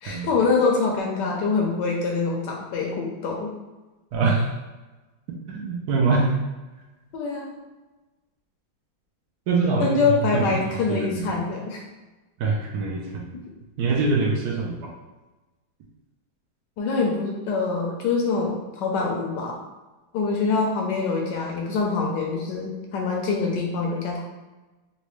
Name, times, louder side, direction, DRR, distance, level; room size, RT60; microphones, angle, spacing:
voice 1, 0.0-3.5 7.1-7.6 9.8-11.8 16.8-19.6 20.1-24.2, left 4 dB, 75° left, -1 dB, 1.1 m, -25 dB
voice 2, 4.1-4.5 5.5-6.4 9.5-10.0 10.3-10.5 10.9-11.4 12.4-13.2 13.8-14.9, right 3 dB, 75° right, -1 dB, 0.9 m, -24 dB
3.9 x 2.2 x 3.1 m, 1.2 s
omnidirectional pair, 2.2 m